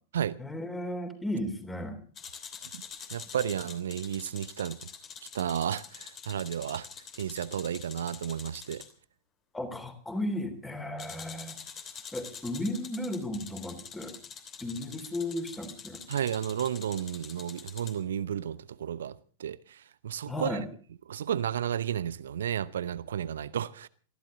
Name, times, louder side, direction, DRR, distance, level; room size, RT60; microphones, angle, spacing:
voice 1, 0.4-2.0 9.5-11.6 12.1-14.1 14.6-16.0 20.3-20.7, left 1 dB, 10° left, 3.3 m, -34 dB
sound 1, 2.2-8.9 11.0-18.0, left 6 dB, 30° left, 3.0 m, -46 dB
voice 2, 3.1-4.8 5.3-6.9 7.2-8.8 16.1-20.6 21.1-23.9, right 9 dB, 65° right, 0.7 m, -32 dB
23.5 x 15.0 x 3.8 m
figure-of-eight pair, 90°, 0 cm